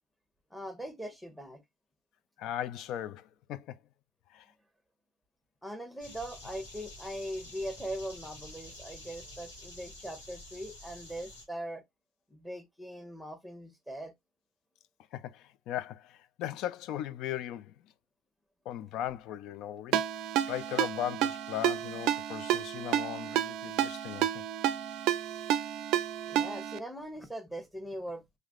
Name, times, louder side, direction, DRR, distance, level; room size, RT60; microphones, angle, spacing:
voice 1, 0.5-1.6 5.6-11.8 12.3-14.1 26.3-28.2, equal, ahead, 1.1 m, -40 dB
voice 2, 2.4-3.8 4.3-4.5 15.1-17.9 18.7-24.5, left 11 dB, 55° left, 0.4 m, -38 dB
sound 1, 6.0-11.4, left 1 dB, 80° left, 1.8 m, -49 dB
Ringtone, 19.9-26.8, right 11 dB, 55° right, 0.4 m, -31 dB
4.8 x 3.2 x 2.3 m
figure-of-eight pair, 70°, 0 cm